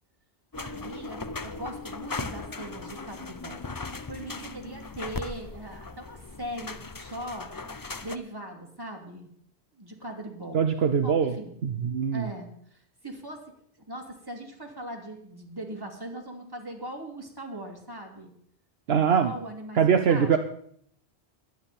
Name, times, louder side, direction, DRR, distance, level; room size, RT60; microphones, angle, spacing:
sound 1, 0.5-8.2, left 3 dB, 25° left, 0.5 m, -38 dB
voice 1, 0.6-3.6 4.1-7.5 8.0-9.3 9.8-10.6 11.0-11.5 12.1-12.5 13.0-13.4 13.9-18.3 19.1-20.3, right 1 dB, 20° right, 1 dB, 2.6 m, -40 dB
voice 2, 10.5-11.3 11.6-12.3 18.9-19.3 19.7-20.4, right 7 dB, 65° right, 6 dB, 1.0 m, -22 dB
22.0 x 9.7 x 4.3 m, 0.66 s
omnidirectional pair, 1.1 m